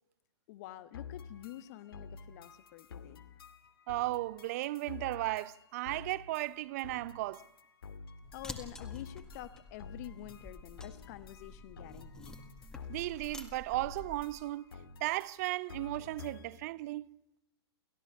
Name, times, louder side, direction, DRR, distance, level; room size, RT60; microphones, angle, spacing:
voice 1, 0.5-3.2 8.3-12.4, left 14 dB, 40° left, 1.4 m, -48 dB
sound 1, 0.9-16.7, left 5 dB, 60° left, 2.2 m, -50 dB
voice 2, 3.9-7.4 12.9-17.1, right 18 dB, 35° right, 0.7 m, -35 dB
sound 2, 8.2-14.4, left 1 dB, 5° left, 2.1 m, -50 dB
29.5 x 15.5 x 7.2 m
figure-of-eight pair, 115°, 14 cm